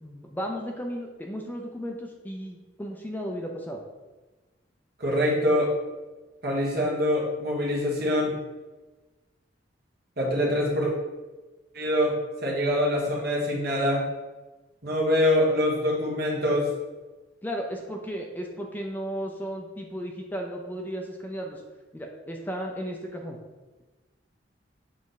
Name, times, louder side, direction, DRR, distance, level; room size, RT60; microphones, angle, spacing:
voice 1, 0.0-3.8 17.4-21.6 21.9-23.4, equal, 10° left, 1 dB, 0.5 m, -34 dB
voice 2, 5.0-5.7 6.4-8.3 10.2-10.9 11.7-12.1 12.4-14.0 14.8-16.7, equal, 55° right, -3 dB, 1.6 m, -24 dB
7.4 x 3.5 x 4.0 m, 1.2 s
head